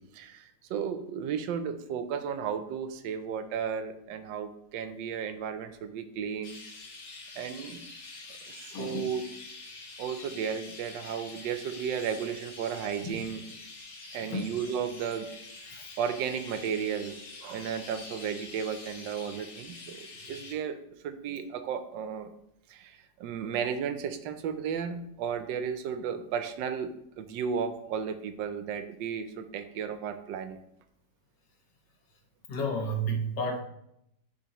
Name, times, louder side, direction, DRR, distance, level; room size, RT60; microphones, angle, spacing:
voice 1, 0.1-6.6 7.4-7.9 8.5-9.2 10.0-13.4 14.1-15.3 15.6-20.8 21.0-22.3 22.7-30.6, right 7 dB, 80° right, 9 dB, 1.2 m, -34 dB
Chirp tweet, 6.4-20.5, left 3 dB, 45° left, 1.2 m, -46 dB
voice 2, 8.7-9.1 13.0-13.1 14.3-14.5 32.5-33.6, right 1 dB, 70° left, 2 dB, 1.7 m, -31 dB
9.5 x 3.6 x 2.9 m, 0.77 s
omnidirectional pair, 2.0 m